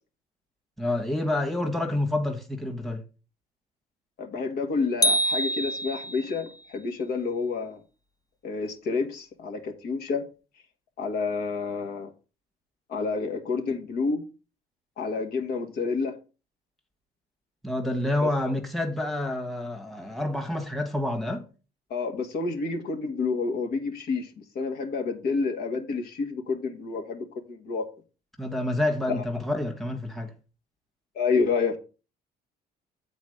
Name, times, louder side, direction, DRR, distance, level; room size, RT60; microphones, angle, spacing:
voice 1, 0.8-3.0 17.6-21.4 28.4-30.3, left 1 dB, ahead, 1.5 m, -28 dB
voice 2, 4.2-7.8 8.4-10.2 11.0-12.1 12.9-14.2 15.0-16.1 18.2-18.3 21.9-24.3 24.6-27.8 29.1-29.2 31.2-31.8, left 4 dB, 70° left, 1.8 m, -29 dB
sound 1, 5.0-6.4, equal, 20° left, 0.7 m, -25 dB
8.0 x 4.2 x 6.6 m
cardioid pair, 110°, 17 cm